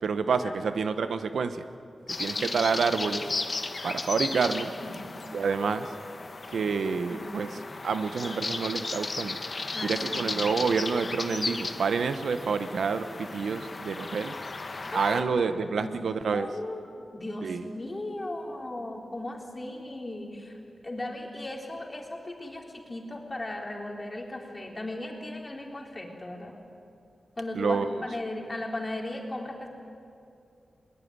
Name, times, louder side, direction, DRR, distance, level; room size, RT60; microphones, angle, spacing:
voice 1, 0.0-1.6 2.2-3.3 3.8-4.7 5.3-5.9 6.5-7.5 7.8-9.4 9.8-14.4 14.9-16.5 17.4-17.6 27.5-28.0, right 5 dB, 85° right, 10 dB, 1.0 m, -28 dB
sound 1, 2.1-15.2, left 3 dB, 45° left, 1.5 m, -35 dB
voice 2, 9.7-10.4 14.8-15.3 15.8-16.8 17.1-26.6 27.4-29.7, left 1 dB, 30° left, 0 dB, 4.1 m, -37 dB
21.5 x 19.5 x 9.5 m, 2.5 s
cardioid pair, 65°, 0 cm